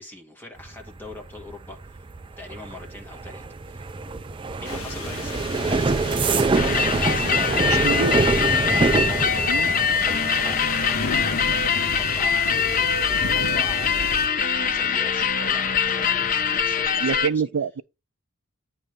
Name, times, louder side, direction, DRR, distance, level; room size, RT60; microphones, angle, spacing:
voice 1, 0.0-2.1 2.4-3.8 4.6-8.3 8.7-17.4, left 2 dB, 10° left, 1.6 m, -42 dB
sound 1, 0.6-15.2 15.5-16.0 16.3-16.6, right 3 dB, 25° right, 0.4 m, -26 dB
sound 2, 4.7-14.3, left 2 dB, 75° left, 1.4 m, -34 dB
sound 3, 6.5-17.3, left 6 dB, 40° left, 0.6 m, -23 dB
voice 2, 7.6-8.2 9.5-9.7 17.0-17.8, right 6 dB, 85° right, 0.5 m, -26 dB
9.8 x 3.3 x 5.2 m
head